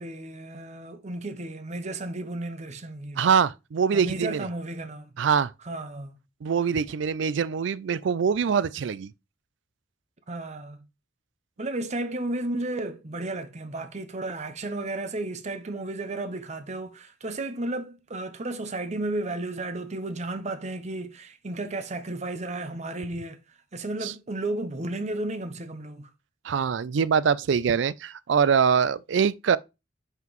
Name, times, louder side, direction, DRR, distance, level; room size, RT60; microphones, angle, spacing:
voice 1, 0.0-3.2 3.9-5.1 5.6-6.1 10.3-10.8 11.6-23.4 23.7-26.1, right 2 dB, 35° right, 0.8 m, -33 dB
voice 2, 3.2-4.5 5.2-5.5 6.4-9.1 24.0-24.1 26.4-29.6, right 6 dB, 70° right, 0.4 m, -23 dB
5.7 x 5.7 x 3.0 m
head